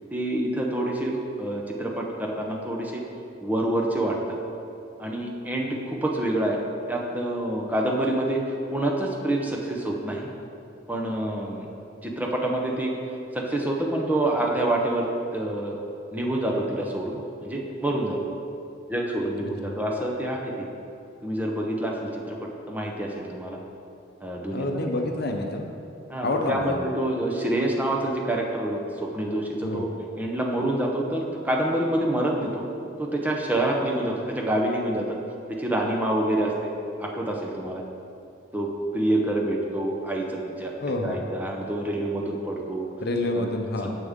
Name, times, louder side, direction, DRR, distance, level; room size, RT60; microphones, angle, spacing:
voice 1, 0.1-3.0 3.4-4.2 5.0-6.6 6.9-8.4 8.7-10.3 10.9-11.7 12.0-12.9 13.3-15.1 15.3-15.8 16.1-18.2 18.9-20.7 21.2-22.4 22.7-23.6 24.2-24.9 26.1-29.9 30.2-32.6 33.0-35.2 35.5-36.7 37.0-37.8 38.5-40.7 41.0-42.9 43.3-43.5 43.8-43.9, right 1 dB, 10° right, -1 dB, 0.8 m, -27 dB
voice 2, 19.4-19.8 24.5-25.7 26.2-26.8 29.6-29.9 40.8-41.2 43.0-43.9, left 2 dB, 55° left, 3 dB, 0.8 m, -28 dB
10.0 x 7.4 x 3.6 m, 2.6 s
head